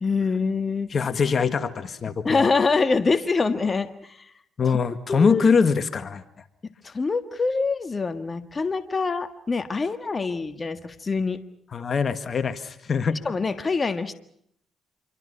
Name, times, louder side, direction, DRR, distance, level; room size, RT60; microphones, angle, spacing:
voice 1, 0.0-0.9 2.2-4.3 5.1-5.5 6.8-11.4 13.1-14.1, left 4 dB, 35° left, 9 dB, 1.7 m, -25 dB
voice 2, 0.9-2.5 4.6-6.2 11.7-13.2, left 5 dB, 50° left, 11 dB, 1.7 m, -23 dB
27.0 x 24.0 x 5.7 m, 0.70 s
supercardioid pair, 65°, 0 cm